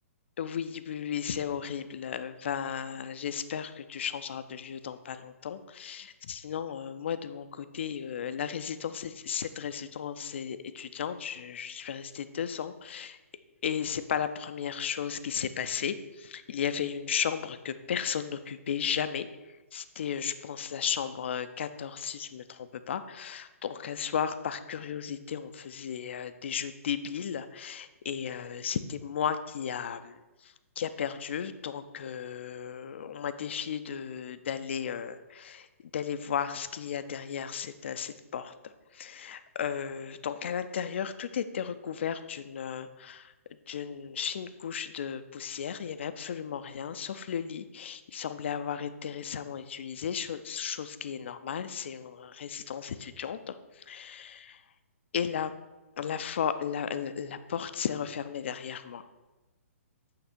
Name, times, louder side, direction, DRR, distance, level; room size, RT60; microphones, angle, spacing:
voice 1, 0.4-13.2 13.6-35.7 35.9-43.3 43.7-54.6 55.1-55.5 56.0-59.0, left 8 dB, 50° left, 11 dB, 0.4 m, -35 dB
8.5 x 3.3 x 5.3 m, 1.1 s
figure-of-eight pair, 125°, 8 cm